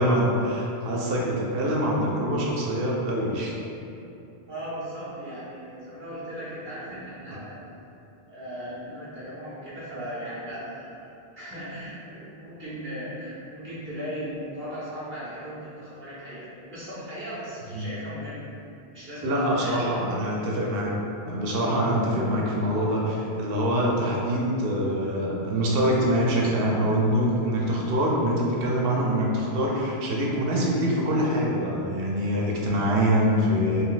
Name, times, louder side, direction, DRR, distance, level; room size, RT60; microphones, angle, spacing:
voice 1, 0.0-3.5 7.3-7.4 17.7-17.9 19.2-21.0 21.3-33.8, equal, 70° right, -3 dB, 0.7 m, -24 dB
voice 2, 4.5-7.6 8.3-18.5 18.9-20.0, equal, 20° right, -11 dB, 0.3 m, -37 dB
2.5 x 2.2 x 3.7 m, 2.7 s
omnidirectional pair, 1.1 m